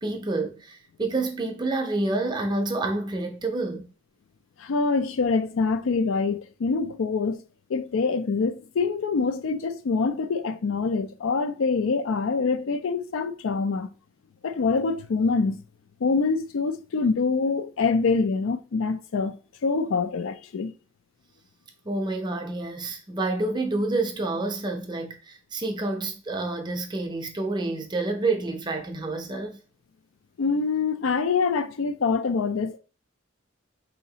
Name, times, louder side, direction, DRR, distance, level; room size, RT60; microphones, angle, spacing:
voice 1, 0.0-3.9 21.9-29.6, right 2 dB, 20° right, 0.5 m, -28 dB
voice 2, 4.6-7.4 7.7-13.9 14.4-15.6 16.0-19.4 19.6-20.7 30.4-32.8, left 4 dB, 80° left, 0.4 m, -25 dB
4.1 x 2.8 x 2.8 m
head